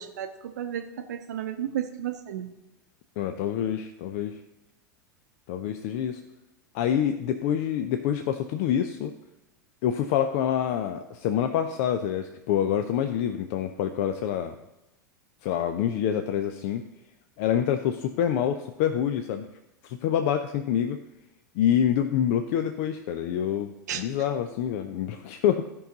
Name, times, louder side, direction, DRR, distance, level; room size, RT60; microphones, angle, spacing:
voice 1, 0.0-2.5 23.9-24.0, right 10 dB, 60° right, 7 dB, 0.7 m, -33 dB
voice 2, 3.2-4.4 5.5-6.2 6.7-9.2 9.8-14.6 15.4-16.8 17.4-19.5 19.8-21.0 21.5-25.6, left 9 dB, 50° left, 8 dB, 0.5 m, -26 dB
14.0 x 5.6 x 3.9 m, 0.94 s
figure-of-eight pair, 85°, 10 cm